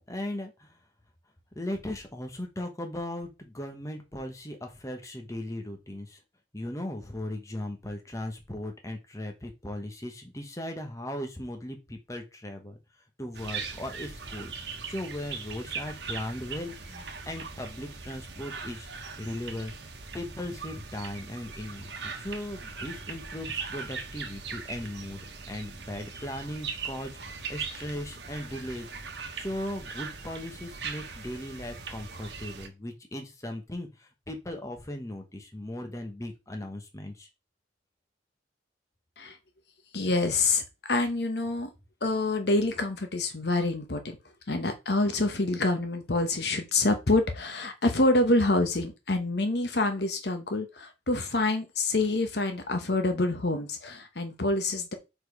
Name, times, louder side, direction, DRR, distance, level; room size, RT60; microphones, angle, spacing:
voice 1, 0.1-0.8 1.5-6.2 6.5-12.8 13.2-18.9 19.2-19.7 20.1-25.2 25.5-37.3, left 1 dB, 20° left, 4 dB, 1.2 m, -38 dB
sound 1, 13.3-32.7, right 5 dB, 70° right, 1.2 m, -40 dB
voice 2, 39.9-41.7 42.0-44.2 44.5-54.9, left 2 dB, 65° left, 7 dB, 1.0 m, -27 dB
5.1 x 4.3 x 4.9 m, 0.25 s
head